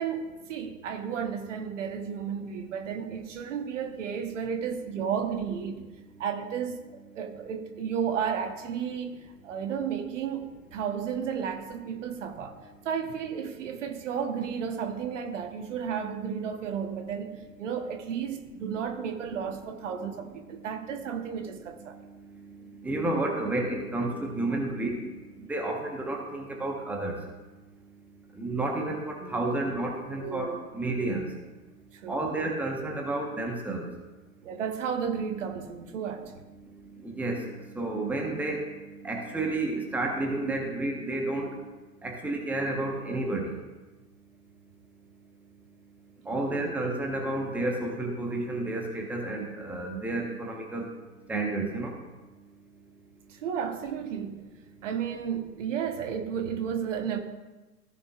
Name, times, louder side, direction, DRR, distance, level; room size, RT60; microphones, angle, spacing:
voice 1, 0.0-5.8 6.2-6.8 7.1-12.5 12.8-17.3 17.6-22.0 29.2-29.6 30.2-30.6 31.9-32.3 34.4-36.4 46.2-46.7 53.3-54.4 54.8-57.2, right 7 dB, 55° right, 5 dB, 1.3 m, -33 dB
voice 2, 20.6-21.1 21.4-27.2 28.3-31.3 32.1-33.9 37.0-41.5 42.0-43.6 46.2-50.9 51.3-52.0, right 2 dB, 5° right, 0 dB, 1.2 m, -31 dB
15.0 x 6.7 x 2.5 m, 1.2 s
figure-of-eight pair, 115°, 45 cm